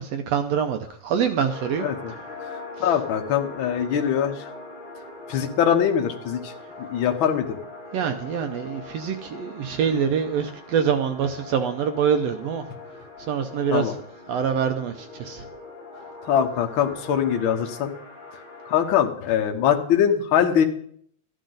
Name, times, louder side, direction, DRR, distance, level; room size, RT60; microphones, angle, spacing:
voice 1, 0.0-1.9 7.9-12.6 13.3-13.8 14.3-15.4, right 7 dB, 75° right, 7 dB, 1.6 m, -25 dB
sound 1, 1.5-19.0, left 2 dB, 15° left, 2.4 m, -42 dB
voice 2, 1.8-2.1 2.8-4.5 5.3-6.5 6.8-7.6 13.7-13.9 16.3-17.9 18.7-20.6, left 9 dB, 60° left, 4 dB, 1.4 m, -22 dB
13.0 x 10.0 x 3.9 m, 0.63 s
omnidirectional pair, 3.4 m